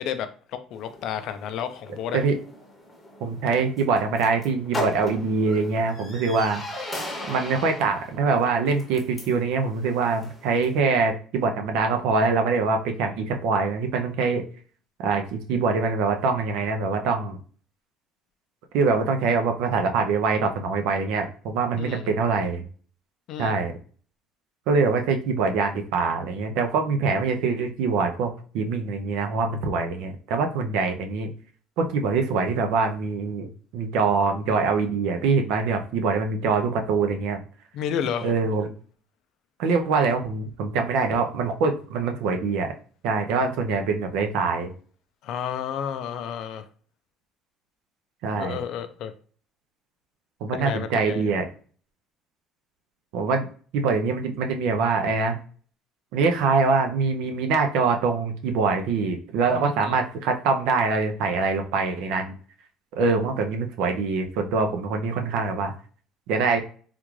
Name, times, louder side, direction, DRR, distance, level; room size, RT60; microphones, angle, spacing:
voice 1, 0.0-2.2 21.8-22.1 23.3-23.6 37.7-38.3 45.2-46.6 48.4-49.1 50.5-51.2 59.5-60.0, left 8 dB, 55° left, 9 dB, 0.4 m, -31 dB
sound 1, 0.7-10.8, left 1 dB, 10° left, 0.8 m, -38 dB
voice 2, 3.2-6.6 7.3-14.4 15.0-17.4 18.7-22.6 23.4-23.7 24.7-31.3 31.8-37.4 38.2-38.7 39.6-42.7 43.0-44.7 48.2-48.6 50.4-51.5 53.1-53.4 53.7-55.4 56.1-62.3 62.9-65.7 66.3-66.6, right 4 dB, 75° right, 5 dB, 0.5 m, -24 dB
3.6 x 2.4 x 3.1 m, 0.43 s
cardioid pair, 155°, 0 cm